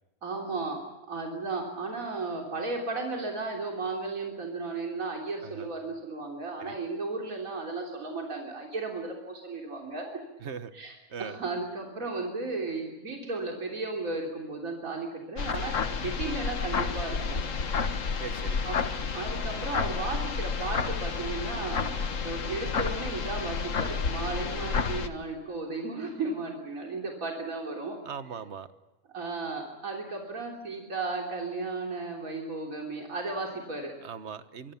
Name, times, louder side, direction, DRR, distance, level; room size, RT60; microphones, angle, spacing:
voice 1, 0.2-0.8 1.1-10.2 10.7-10.9 11.2-15.7 16.0-17.4 18.6-18.8 19.1-21.9 22.2-28.0 29.1-33.9, right 3 dB, 70° right, 0 dB, 3.8 m, -34 dB
voice 2, 10.4-10.7 11.1-11.4 18.2-18.6 28.0-28.7 34.0-34.7, right 6 dB, 50° right, 12 dB, 1.5 m, -40 dB
sound 1, 15.4-25.1, left 5 dB, 60° left, 1.7 m, -30 dB
24.5 x 24.0 x 7.2 m, 1.1 s
omnidirectional pair, 1.5 m